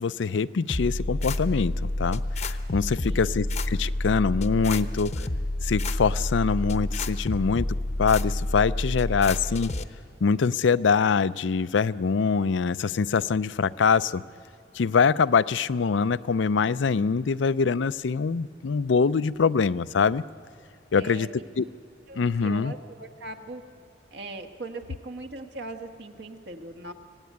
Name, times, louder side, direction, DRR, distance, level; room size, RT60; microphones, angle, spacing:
voice 1, 0.0-5.1 5.6-7.7 8.0-9.7 10.2-14.2 14.7-20.2 20.9-21.3 21.6-21.7 22.2-22.7, left 5 dB, 80° left, 17 dB, 0.5 m, -24 dB
sound 1, 0.7-9.8, left 1 dB, 35° left, 0.8 m, -29 dB
voice 2, 3.0-3.4 21.0-21.4 22.1-23.6 24.1-26.9, right 2 dB, 65° right, 6 dB, 1.6 m, -40 dB
25.0 x 17.5 x 9.4 m, 2.4 s
head